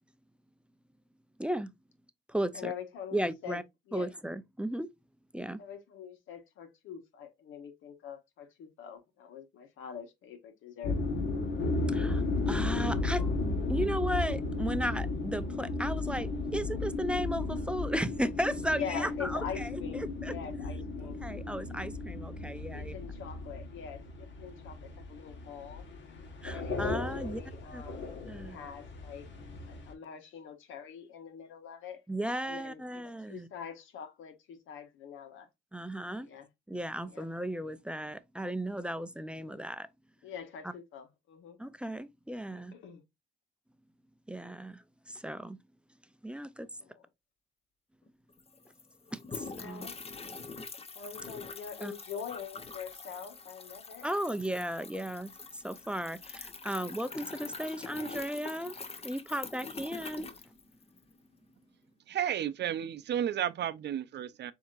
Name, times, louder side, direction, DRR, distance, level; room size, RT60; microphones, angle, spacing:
voice 1, 1.4-1.7 2.3-2.7 3.1-3.6 3.9-4.9 5.3-5.6 11.9-13.3 13.7-19.8 20.2-20.3 21.0-22.9 26.4-27.4 27.7-27.8 28.3-28.6 32.1-33.5 35.7-36.3 36.7-39.9 40.6-40.7 41.6-42.7 44.3-45.6 46.2-46.7 49.1-49.9 51.8-51.9 54.0-60.3, right 1 dB, 5° right, 0.5 m, -35 dB
voice 2, 2.5-3.6 3.9-4.1 5.6-11.0 18.7-21.2 22.7-25.9 26.5-29.3 29.7-32.0 32.4-35.5 36.1-36.5 37.0-37.2 40.2-41.6 42.5-43.0 46.8-47.0 49.5-50.0 50.9-54.1, left 7 dB, 85° left, 1.3 m, -44 dB
sound 1, 10.8-29.9, left 3 dB, 65° left, 1.6 m, -34 dB
sound 2, 48.1-48.2 48.3-61.1, left 4 dB, 30° left, 0.9 m, -45 dB
voice 3, 62.1-64.5, right 10 dB, 60° right, 0.6 m, -32 dB
7.1 x 2.9 x 2.4 m
cardioid pair, 90°, 20 cm